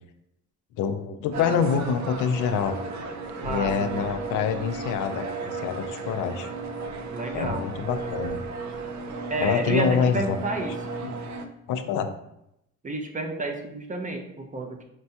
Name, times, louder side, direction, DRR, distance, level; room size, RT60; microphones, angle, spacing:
voice 1, 0.8-2.8 3.4-6.5 7.3-8.4 9.4-10.4 11.0-11.1 11.7-12.1, left 7 dB, 80° left, 8 dB, 0.5 m, -26 dB
sound 1, 1.3-11.5, right 3 dB, 70° right, 0.5 m, -34 dB
voice 2, 3.4-4.1 7.1-7.7 9.3-10.8 12.8-14.8, right 2 dB, 25° right, 3 dB, 0.6 m, -30 dB
5.1 x 2.2 x 2.8 m, 0.80 s
cardioid pair, 90°, 30 cm